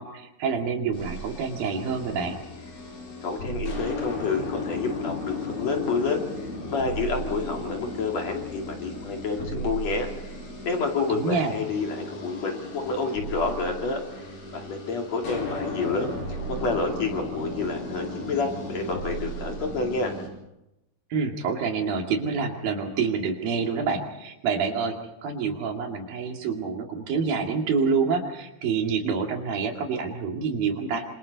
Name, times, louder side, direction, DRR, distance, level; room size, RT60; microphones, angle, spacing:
voice 1, 0.0-2.4 11.1-11.5 21.1-25.0 25.2-31.0, right 5 dB, 80° right, 2 dB, 4.1 m, -27 dB
sound 1, 0.9-20.3, equal, 65° left, 6.3 m, -35 dB
voice 2, 3.2-10.4 10.6-16.1 16.5-20.1, left 4 dB, 50° left, 1 dB, 3.5 m, -29 dB
28.0 x 26.0 x 4.1 m, 0.89 s
omnidirectional pair, 4.1 m